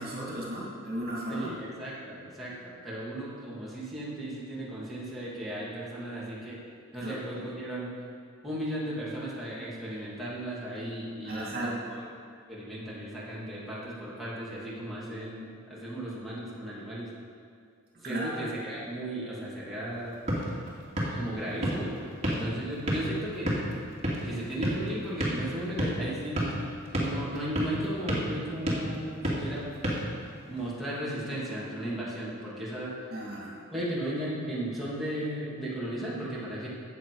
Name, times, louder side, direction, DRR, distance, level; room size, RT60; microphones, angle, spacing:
voice 1, 0.0-1.6 7.0-7.5 11.2-11.8 18.0-18.4 33.1-33.5, right 1 dB, 50° right, -5 dB, 2.4 m, -35 dB
voice 2, 1.3-6.6 6.9-7.9 8.4-12.1 12.5-17.1 18.0-20.1 21.1-22.0 22.2-23.5 24.2-26.4 26.9-29.7 30.5-32.9 33.7-36.7, right 1 dB, ahead, -8 dB, 2.6 m, -35 dB
sound 1, 19.9-30.7, equal, 30° right, 2.4 m, -33 dB
13.5 x 8.1 x 4.9 m, 2.3 s
head